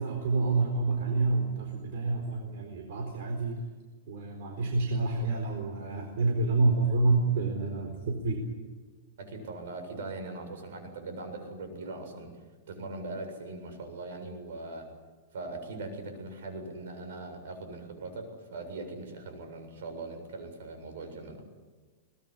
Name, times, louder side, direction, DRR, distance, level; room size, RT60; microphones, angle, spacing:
voice 1, 0.0-3.6 4.1-8.4, right 3 dB, 65° right, 3 dB, 4.3 m, -28 dB
voice 2, 9.2-12.3 12.7-14.9 15.3-21.4, right 2 dB, 80° right, 6 dB, 7.4 m, -40 dB
22.5 x 20.5 x 9.9 m, 1.3 s
supercardioid pair, 165°, 0 cm